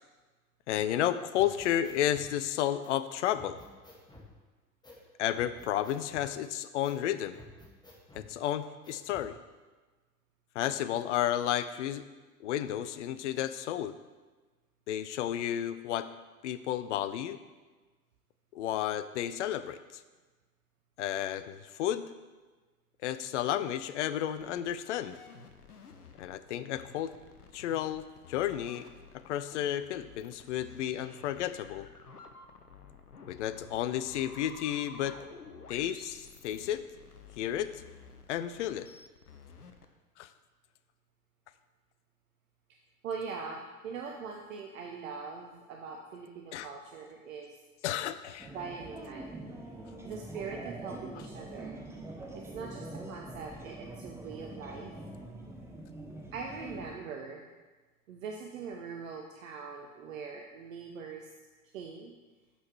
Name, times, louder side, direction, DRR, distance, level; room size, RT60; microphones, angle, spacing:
voice 1, 0.7-3.6 5.2-7.4 8.1-9.4 10.5-12.0 12.4-13.9 14.9-16.1 16.4-17.4 18.5-20.0 21.0-22.1 23.0-25.2 26.2-27.1 27.5-28.9 29.1-31.9 33.2-35.2 35.7-36.8 37.4-37.8 38.3-38.9 40.2-40.3 46.5-46.7 47.8-48.5, left 11 dB, 55° left, 13 dB, 0.5 m, -32 dB
sound 1, 1.3-2.3 2.8-2.9 3.3-4.3 4.8-5.0 5.3-6.3 6.8-7.0 7.3-8.3 8.8-9.3, left 2 dB, 10° left, 1.5 m, -52 dB
sound 2, 24.4-39.9, left 5 dB, 85° left, 0.8 m, -52 dB
voice 2, 43.0-47.6 48.5-49.4 50.0-51.8 52.3-54.9 56.3-57.4 58.1-61.3 61.7-62.1, right 5 dB, 60° right, 1 dB, 0.9 m, -42 dB
sound 3, 48.4-56.9, right 1 dB, 5° right, 0.8 m, -44 dB
8.4 x 5.7 x 4.5 m, 1.3 s
figure-of-eight pair, 85°, 45 cm